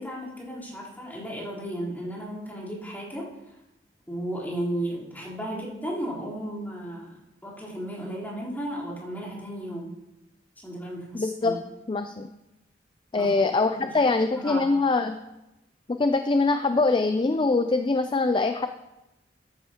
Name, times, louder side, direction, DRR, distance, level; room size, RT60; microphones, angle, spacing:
voice 1, 0.0-3.3 4.1-9.9 10.6-11.5 13.1-13.3 13.7-14.7, right 1 dB, 10° left, -8 dB, 3.8 m, -34 dB
voice 2, 11.1-11.5 11.9-12.3 13.1-15.2 15.9-18.7, left 3 dB, 30° left, 8 dB, 0.4 m, -23 dB
13.0 x 11.0 x 2.9 m, 0.95 s
head